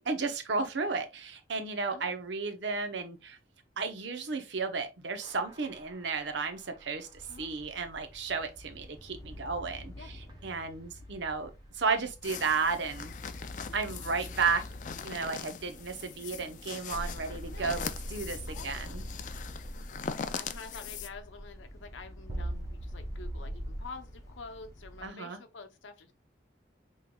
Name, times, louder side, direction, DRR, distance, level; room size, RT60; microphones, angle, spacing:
voice 1, 0.0-3.4 3.8-13.1 13.7-14.6 15.0-19.0 25.0-25.4, right 4 dB, 70° right, 0.8 m, -33 dB
sound 1, 5.2-7.8 10.3-10.4 16.9-23.9, right 1 dB, 25° right, 0.6 m, -42 dB
sound 2, 7.1-25.1, left 1 dB, 15° left, 0.8 m, -48 dB
sound 3, 12.2-21.1, left 7 dB, 40° left, 0.3 m, -41 dB
voice 2, 18.5-19.0 20.3-26.1, left 4 dB, 85° left, 0.8 m, -48 dB
5.5 x 3.1 x 2.3 m
head